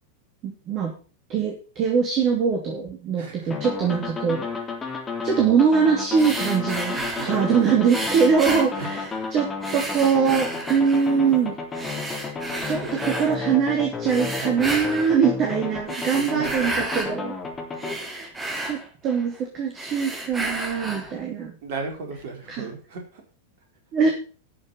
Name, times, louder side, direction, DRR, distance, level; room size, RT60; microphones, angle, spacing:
voice 1, 0.4-0.9 1.3-4.4 5.2-9.0 9.3-9.5 9.7-11.6 12.6-12.8 13.0-17.3 17.8-18.3 18.6-21.6 22.5-22.7 23.9-24.1, right 6 dB, 35° right, 2 dB, 2.9 m, -22 dB
voice 2, 3.1-3.7 6.9-7.8 8.7-9.3 12.8-13.4 14.2-14.6 16.2-16.9 21.6-23.2, right 4 dB, 50° right, 3 dB, 4.2 m, -36 dB
sound 1, 3.5-17.9, left 4 dB, 20° left, 3.7 m, -32 dB
sound 2, 6.1-7.4 7.9-9.3 9.6-11.2 11.7-13.3 14.0-15.2 15.8-17.2 17.5-19.4 19.7-21.2, right 1 dB, 15° right, 2.9 m, -32 dB
12.5 x 6.7 x 7.0 m, 0.38 s
figure-of-eight pair, 90°, 0 cm